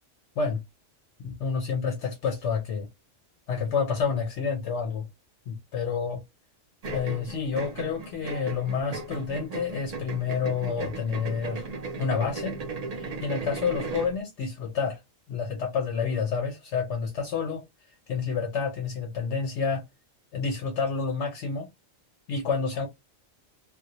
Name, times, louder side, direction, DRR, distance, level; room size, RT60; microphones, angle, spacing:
voice 1, 1.2-2.9 3.5-5.1 5.5-6.2 6.9-11.6 12.0-12.6 12.9-15.0 15.3-17.6 18.1-19.8 20.3-21.7 22.3-22.9, left 5 dB, 70° left, 0.9 m, -29 dB
sound 1, 6.8-14.2, right 3 dB, 50° right, 0.4 m, -36 dB
2.2 x 2.1 x 2.8 m
omnidirectional pair, 1.3 m